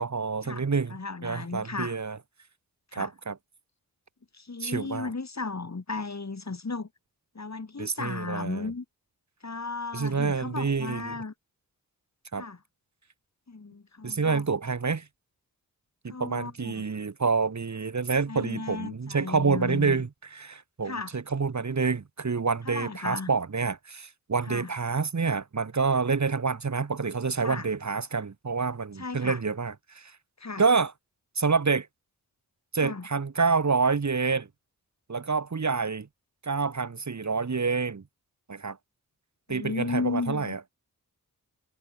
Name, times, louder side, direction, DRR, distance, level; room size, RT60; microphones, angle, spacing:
voice 1, 0.0-2.2 2.9-3.4 4.6-5.1 7.8-8.7 9.9-11.1 12.3-12.5 14.0-15.1 16.0-30.1 30.6-30.9 31.4-31.9 32.7-34.5 35.1-36.1 36.4-38.0 38.5-38.8 39.5-40.7, right 4 dB, 45° right, 1.9 m, -28 dB
voice 2, 0.9-2.0 2.9-3.1 4.3-6.9 7.4-8.9 9.4-11.3 12.3-12.6 13.5-14.5 16.1-16.9 18.3-20.0 20.9-21.1 22.7-23.3 24.5-24.7 27.4-27.7 29.0-29.4 30.4-30.6 32.7-33.1 39.5-40.6, left 3 dB, 45° left, 5.1 m, -35 dB
cardioid pair, 45°, 38 cm